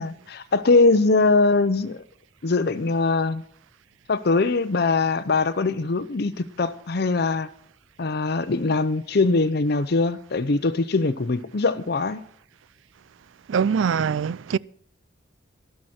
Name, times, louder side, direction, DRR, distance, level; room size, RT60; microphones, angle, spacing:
voice 1, 0.0-2.0 2.4-3.4 4.1-7.5 8.0-12.2, left 3 dB, 55° left, 0.6 m, -22 dB
voice 2, 13.5-14.6, right 6 dB, 85° right, 0.4 m, -23 dB
12.5 x 12.5 x 4.4 m
head